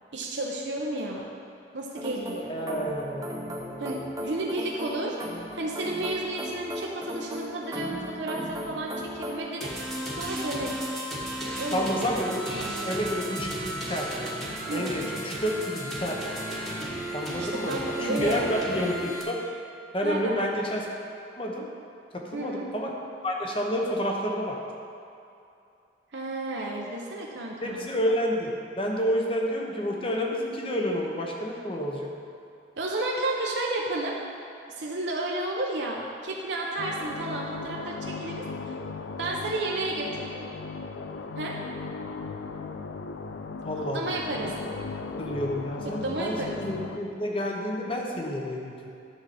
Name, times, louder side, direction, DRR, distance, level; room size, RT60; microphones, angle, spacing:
voice 1, 0.1-1.2 1.7-2.6 3.8-5.2 5.5-9.7 10.2-10.8 11.4-11.9 12.5-12.9 14.7-14.9 17.3-18.9 20.0-20.5 22.3-22.7 26.1-27.9 32.8-34.2 34.7-38.8 39.2-40.5 41.4-41.6 43.9-44.5 45.8-46.6, right 2 dB, 75° right, -2 dB, 0.8 m, -32 dB
sound 1, 2.0-9.4, equal, 20° right, 0.9 m, -37 dB
voice 2, 2.5-4.1 11.7-14.1 14.7-16.2 17.1-19.4 19.9-20.9 21.4-21.7 22.1-22.9 23.2-24.6 27.6-32.1 43.6-44.7 45.2-48.9, equal, 30° left, 0 dB, 1.0 m, -30 dB
sound 2, 9.6-19.2, right 1 dB, ahead, 1.3 m, -34 dB
sound 3, 36.8-47.0, left 4 dB, 80° left, 0.5 m, -37 dB
11.0 x 6.9 x 4.3 m, 2.6 s
head